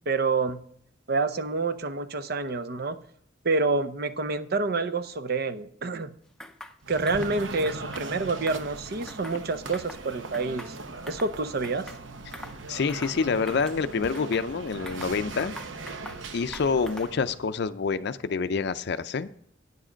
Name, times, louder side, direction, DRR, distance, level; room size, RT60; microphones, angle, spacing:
voice 1, 0.1-0.6 1.1-3.0 3.4-6.1 6.9-10.8 11.1-11.9, right 3 dB, 55° right, 11 dB, 0.7 m, -28 dB
sound 1, 6.4-6.8 7.1-7.4 7.6-8.1 8.4-9.4 9.7-10.0 10.3-11.3 11.6-12.0 12.3-12.6 12.9-13.2 13.5-14.4 14.9-16.2 16.5-17.2, left 1 dB, 5° left, 0.6 m, -44 dB
sound 2, 6.8-17.5, right 3 dB, 85° right, 0.9 m, -39 dB
voice 2, 12.7-15.5 16.3-19.3, left 5 dB, 60° left, 12 dB, 0.4 m, -27 dB
9.6 x 7.4 x 5.0 m, 0.65 s
head